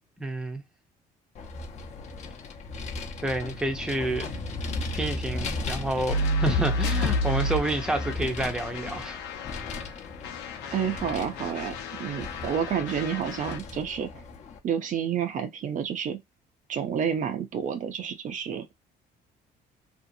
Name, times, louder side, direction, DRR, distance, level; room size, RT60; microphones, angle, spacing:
voice 1, 0.2-0.6 3.2-4.3 4.9-9.2 9.9-10.0, right 2 dB, 5° right, 0.6 m, -29 dB
Vehicle, 1.3-14.6, left 3 dB, 40° left, 0.7 m, -37 dB
sound 1, 6.1-9.9 10.2-13.6, left 1 dB, 90° left, 0.7 m, -31 dB
voice 2, 10.7-14.1 14.6-16.2 16.7-18.7, right 8 dB, 50° right, 0.5 m, -29 dB
2.7 x 2.4 x 2.6 m
cardioid pair, 110°, 17 cm